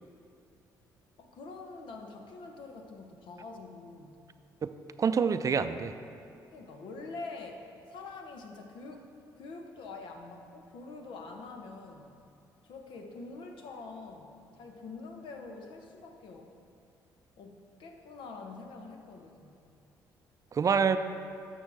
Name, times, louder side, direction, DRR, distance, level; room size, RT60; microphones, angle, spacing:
voice 1, 1.2-4.2 6.5-9.1 9.4-12.2 12.6-16.5 17.4-19.6, left 3 dB, 75° left, 4 dB, 1.0 m, -45 dB
voice 2, 5.0-5.9 20.5-21.0, right 6 dB, 40° right, 10 dB, 0.4 m, -26 dB
12.5 x 6.2 x 3.5 m, 2.6 s
supercardioid pair, 65°, 9 cm